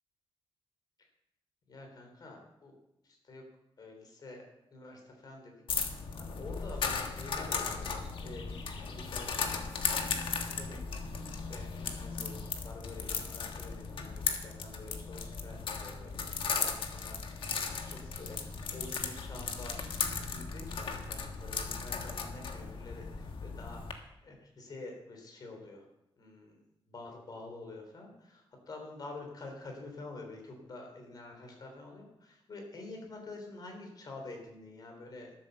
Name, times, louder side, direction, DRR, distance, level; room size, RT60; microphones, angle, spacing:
voice 1, 1.7-2.7 3.3-3.4 3.8-4.4 4.7-5.5 5.8-10.2 10.4-10.8 11.5-17.4 17.9-19.8 20.2-23.8 24.2-25.8 26.2-26.6 26.9-35.3, left 2 dB, 45° left, 2 dB, 3.4 m, -48 dB
sound 1, 5.7-23.9, left 5 dB, 65° left, 1.4 m, -36 dB
12.5 x 7.6 x 6.7 m, 0.86 s
wide cardioid pair, 175°, 9 cm